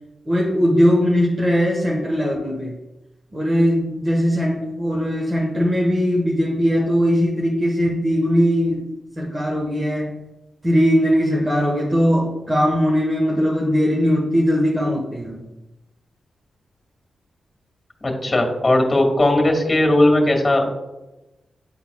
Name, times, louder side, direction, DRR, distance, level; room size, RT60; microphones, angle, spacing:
voice 1, 0.3-2.7 3.3-8.8 9.2-10.1 10.6-15.4, equal, 35° right, -3 dB, 1.3 m, -19 dB
voice 2, 18.0-20.7, left 1 dB, 30° left, 2 dB, 2.0 m, -17 dB
10.0 x 4.0 x 2.3 m, 1.0 s
supercardioid pair, 40°, 0 cm